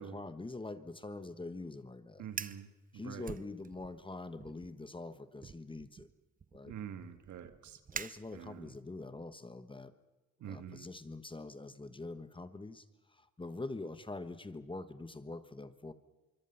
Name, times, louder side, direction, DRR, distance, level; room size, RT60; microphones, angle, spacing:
voice 1, 0.0-2.3 2.9-6.1 6.5-6.7 7.9-9.9 10.5-15.9, left 2 dB, 15° left, 12 dB, 1.3 m, -44 dB
Fire, 2.2-2.7 3.2-4.0 4.4-4.7 5.4-8.8, right 6 dB, 30° right, 0.7 m, -46 dB
voice 2, 2.2-3.3 6.7-7.8 8.3-8.7 10.4-10.9, right 8 dB, 70° right, 9 dB, 2.1 m, -46 dB
25.5 x 24.0 x 5.7 m, 1.1 s
cardioid pair, 90°, 30 cm